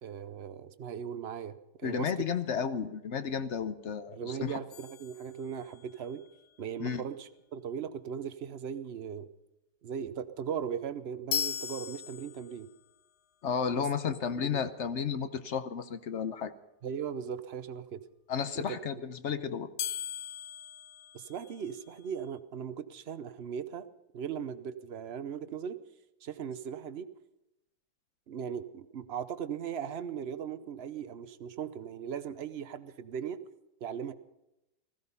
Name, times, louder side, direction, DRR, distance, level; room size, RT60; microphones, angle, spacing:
voice 1, 0.0-2.3 4.1-6.2 6.6-9.3 9.8-12.7 13.8-14.1 14.5-14.6 16.8-18.0 18.6-18.8 21.1-23.9 24.1-25.8 26.2-27.1 28.3-33.4 33.8-34.1, right 7 dB, 50° right, 12 dB, 0.9 m, -38 dB
voice 2, 1.8-4.6 6.8-7.0 13.4-16.5 18.3-19.7, left 7 dB, 55° left, 12 dB, 1.0 m, -33 dB
sound 1, 4.7-6.0 11.3-12.8 19.8-21.9, left 9 dB, 75° left, 1.3 m, -38 dB
15.5 x 15.5 x 5.5 m, 0.91 s
omnidirectional pair, 1.7 m